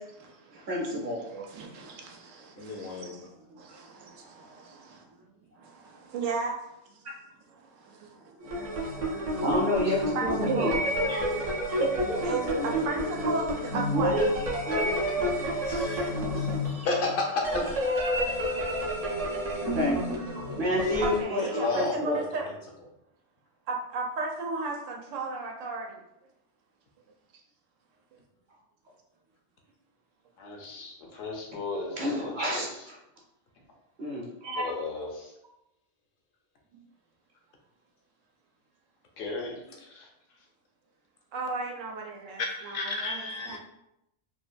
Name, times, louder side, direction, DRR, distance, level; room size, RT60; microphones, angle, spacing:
voice 1, 0.0-5.2 5.5-7.0 7.5-9.4 10.1-10.9 11.6-11.8 12.2-14.2 21.0-22.6 23.7-26.0 28.1-28.2 31.1-31.2 41.3-43.2 43.5-43.6, right 3 dB, 85° right, 1 dB, 1.0 m, -36 dB
voice 2, 0.5-1.2 9.4-10.8 11.1-11.3 11.7-12.8 13.9-14.3 14.7-15.5 19.7-20.0 20.6-21.4 21.7-22.1 32.0-32.7 34.0-34.6, equal, 50° right, -3 dB, 0.8 m, -29 dB
voice 3, 2.6-3.2 15.6-17.8 18.1-18.3 21.4-22.3 42.4-43.6, left 3 dB, 60° left, 1 dB, 0.6 m, -32 dB
sound 1, 8.4-21.2, equal, 70° right, 0.3 m, -30 dB
voice 4, 30.4-32.9 34.5-35.3 39.2-40.5, left 3 dB, 80° left, 0 dB, 0.9 m, -38 dB
3.0 x 2.1 x 2.4 m, 0.83 s
omnidirectional pair, 1.3 m